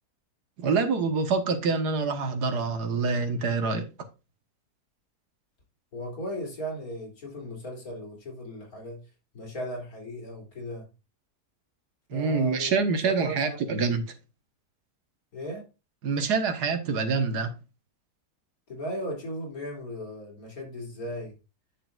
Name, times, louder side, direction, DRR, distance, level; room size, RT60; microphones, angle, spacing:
voice 1, 0.6-3.9 12.1-14.0 16.0-17.5, right 4 dB, 80° right, 1.8 m, -26 dB
voice 2, 5.9-9.0 9.3-10.9 12.1-12.7 13.0-13.6 15.3-15.7 18.7-21.3, equal, 60° left, 3.4 m, -37 dB
10.0 x 6.7 x 2.4 m
omnidirectional pair, 1.7 m